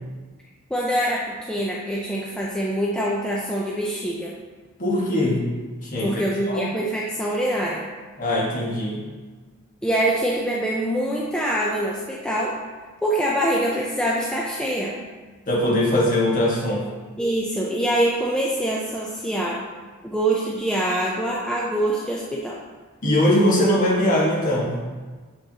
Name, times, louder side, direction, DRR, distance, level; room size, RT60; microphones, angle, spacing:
voice 1, 0.7-4.3 6.0-7.9 9.8-12.5 13.0-15.0 17.2-19.6 20.0-22.6, right 1 dB, 5° left, -4 dB, 0.5 m, -24 dB
voice 2, 4.8-5.5 5.8-6.7 8.2-9.0 15.5-16.8 23.0-24.7, left 1 dB, 35° left, -4 dB, 1.3 m, -21 dB
7.6 x 5.1 x 2.8 m, 1.4 s
head